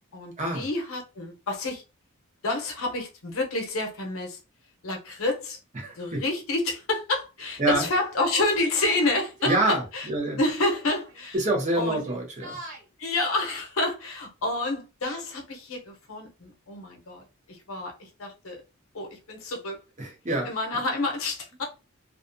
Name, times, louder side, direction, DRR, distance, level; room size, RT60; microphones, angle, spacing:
voice 1, 0.1-1.8 2.4-4.4 4.8-5.6 6.0-10.1 10.4-11.4 11.8-12.0 13.0-17.2 17.7-17.9 18.2-18.6 18.9-19.8 20.4-21.6, left 2 dB, 70° left, 0.7 m, -28 dB
voice 2, 5.7-6.2 7.6-7.9 9.4-10.4 11.3-12.6 20.0-20.5, right 2 dB, 35° right, 0.8 m, -26 dB
Yell, 8.7-9.8 10.8-11.2 11.6-12.8, right 2 dB, 60° right, 1.3 m, -40 dB
2.4 x 2.3 x 2.6 m
head